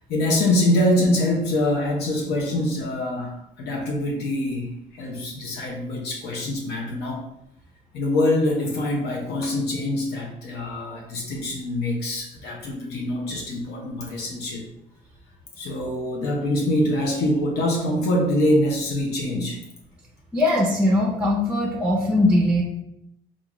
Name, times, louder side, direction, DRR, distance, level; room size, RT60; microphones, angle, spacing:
voice 1, 0.1-7.2 7.9-14.6 15.6-19.6, left 1 dB, 75° left, -1 dB, 0.8 m, -24 dB
voice 2, 20.3-22.6, left 1 dB, 5° right, -2 dB, 0.6 m, -20 dB
3.6 x 2.6 x 3.0 m, 0.78 s
cardioid pair, 110°, 17 cm